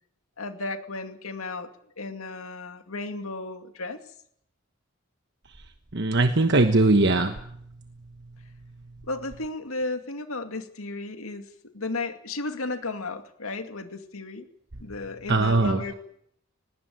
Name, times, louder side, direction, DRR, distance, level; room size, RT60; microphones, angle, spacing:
voice 1, 0.4-1.7 2.0-4.0 9.1-11.5 11.7-14.5 14.8-16.0, left 2 dB, 90° left, 7 dB, 2.3 m, -34 dB
voice 2, 5.9-7.3 15.3-15.8, right 2 dB, 55° right, 7 dB, 1.2 m, -20 dB
19.5 x 17.0 x 9.5 m, 0.70 s
head